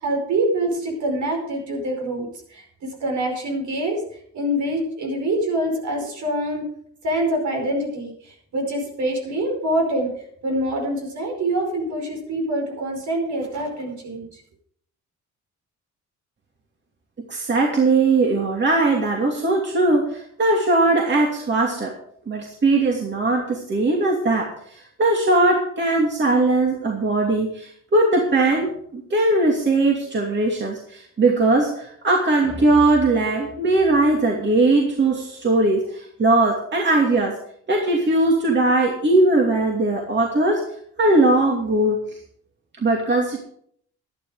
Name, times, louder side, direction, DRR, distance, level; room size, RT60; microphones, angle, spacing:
voice 1, 0.0-4.0 4.3-6.7 7.0-10.1 10.4-14.4, right 1 dB, 75° right, 2 dB, 5.2 m, -25 dB
voice 2, 17.3-21.9 22.3-37.4 37.7-40.6 41.0-42.0 42.8-43.4, right 2 dB, 35° right, -1 dB, 2.7 m, -19 dB
12.0 x 11.5 x 5.0 m, 0.65 s
cardioid pair, 100°, 30 cm